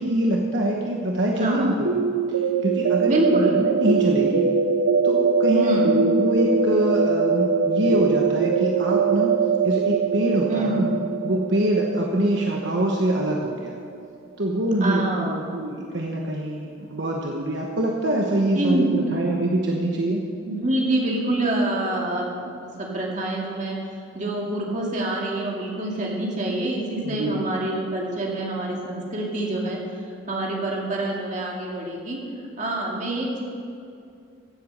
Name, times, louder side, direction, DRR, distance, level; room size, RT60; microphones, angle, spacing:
voice 1, 0.0-2.0 2.6-4.5 5.0-9.3 9.6-10.8 11.2-13.7 14.4-20.2 27.0-27.4, right 1 dB, 60° right, -1 dB, 1.2 m, -24 dB
voice 2, 1.3-1.8 3.1-3.6 5.5-5.9 10.5-10.9 14.8-15.5 18.4-19.0 20.4-23.8 24.1-29.8 30.3-32.2 32.6-33.4, right 1 dB, 40° right, -2 dB, 2.4 m, -26 dB
sound 1, 1.8-13.6, right 5 dB, 85° right, 0.7 m, -22 dB
16.0 x 8.0 x 6.6 m, 2.5 s
head